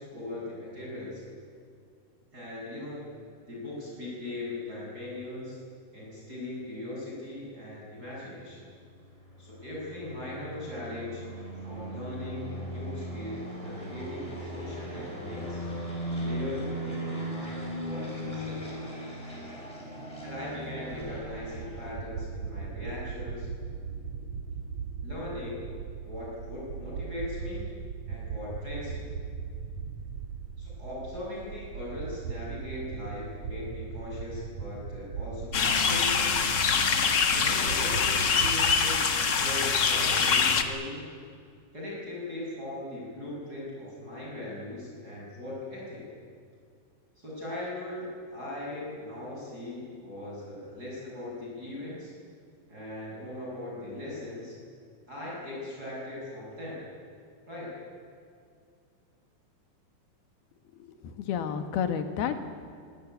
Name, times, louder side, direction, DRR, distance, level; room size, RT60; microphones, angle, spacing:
voice 1, 0.0-1.3 2.3-3.0 3.5-5.6 5.9-8.7 9.4-11.2 11.6-15.6 16.2-18.6 20.2-23.5 25.0-25.6 26.1-27.6 28.1-29.1 30.6-36.4 37.3-39.0 39.4-41.0 41.7-46.1 47.2-52.1 52.7-54.6 55.1-56.8 57.5-57.7, left 1 dB, 25° right, -5 dB, 7.3 m, -39 dB
sound 1, 8.6-21.9, right 1 dB, 10° left, 5.6 m, -38 dB
sound 2, 20.9-39.0, right 6 dB, 55° right, 2.6 m, -39 dB
sound 3, 35.5-40.6, left 5 dB, 60° left, 1.1 m, -24 dB
voice 2, 60.8-62.4, left 8 dB, 90° left, 7 dB, 3.6 m, -31 dB
25.5 x 18.5 x 9.6 m, 2.2 s
omnidirectional pair, 4.3 m